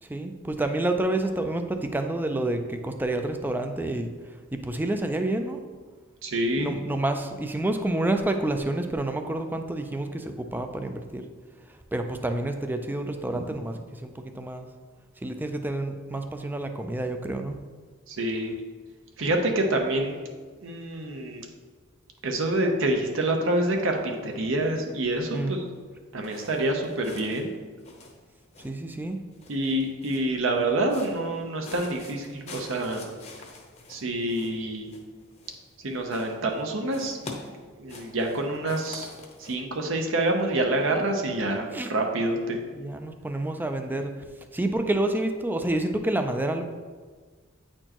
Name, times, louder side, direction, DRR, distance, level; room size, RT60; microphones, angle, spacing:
voice 1, 0.0-5.6 6.6-11.2 11.7-14.7 15.2-17.6 25.3-25.6 28.6-29.2 41.7-41.9 42.7-44.2 44.5-46.6, right 1 dB, 10° right, 6 dB, 0.4 m, -29 dB
voice 2, 6.2-6.8 18.1-18.6 19.2-20.2 20.6-21.4 22.2-25.6 26.1-27.5 29.5-33.1 33.9-34.9 35.8-39.1 39.4-42.6, right 1 dB, 65° right, 3 dB, 0.8 m, -27 dB
sound 1, 26.2-27.5 27.8-28.9 29.3-30.4 30.8-31.3 31.6-35.8 36.1-36.6 36.9-39.6, left 3 dB, 30° left, 0.8 m, -45 dB
8.9 x 4.4 x 3.0 m, 1.5 s
head